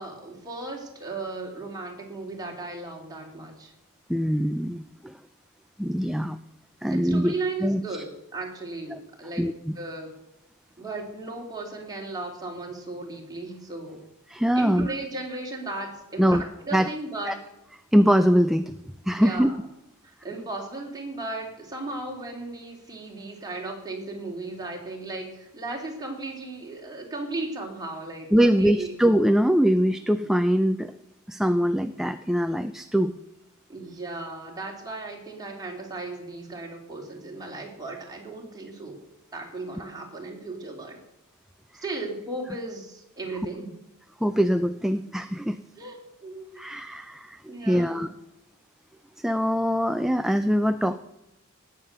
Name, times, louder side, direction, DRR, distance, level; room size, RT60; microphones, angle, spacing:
voice 1, 0.0-3.7 6.9-9.5 9.7-10.2 10.8-14.0 14.5-17.4 19.2-19.5 20.0-28.9 33.7-39.0 39.3-41.0 41.8-43.7 45.8-46.6 47.5-48.1, right 2 dB, 20° right, 0 dB, 3.2 m, -36 dB
voice 2, 4.1-5.2 5.8-6.4 6.8-7.3 7.6-8.0 8.9-9.0 9.4-9.8 14.3-14.9 16.2-16.4 16.7-16.9 17.3-17.4 17.9-18.7 19.1-19.5 28.3-30.9 31.3-33.1 44.2-45.6 46.6-48.1 49.2-51.0, equal, ahead, 9 dB, 0.4 m, -23 dB
18.0 x 7.5 x 6.8 m, 0.93 s
head